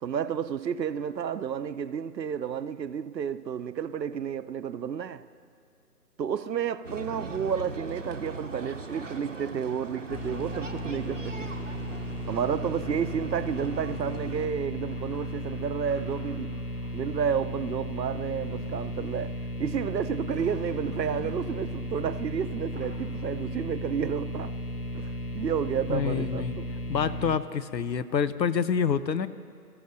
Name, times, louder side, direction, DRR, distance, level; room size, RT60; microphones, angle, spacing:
voice 1, 0.0-5.2 6.2-11.5 12.3-16.5 16.9-24.5 24.9-26.7, right 7 dB, 80° right, 0.7 m, -31 dB
sound 1, 6.8-14.5, right 3 dB, 50° right, 0.7 m, -40 dB
sound 2, 10.1-27.4, equal, 60° left, 1.2 m, -35 dB
sound 3, 14.3-17.2 18.2-21.7 22.3-23.2, right 1 dB, 10° left, 1.9 m, -49 dB
voice 2, 25.9-26.6 26.9-29.3, left 7 dB, 85° left, 0.8 m, -27 dB
25.0 x 14.5 x 2.6 m
hypercardioid pair, 180°, 50 cm